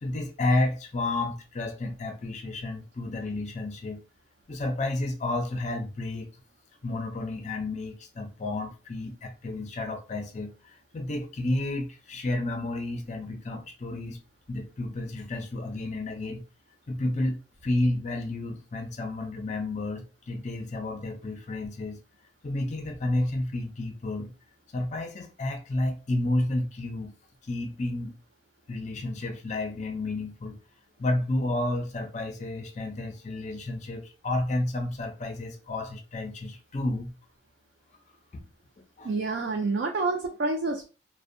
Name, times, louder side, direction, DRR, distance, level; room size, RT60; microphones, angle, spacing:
voice 1, 0.0-4.0 4.5-6.3 6.8-14.2 14.5-16.4 16.9-22.0 22.4-24.3 24.7-27.1 27.4-28.2 28.7-30.6 31.0-37.1 38.3-38.5 38.8-39.1, left 2 dB, 40° left, 0.4 m, -31 dB
voice 2, 39.0-40.8, right 3 dB, 70° right, 0.4 m, -28 dB
2.6 x 2.1 x 2.5 m
head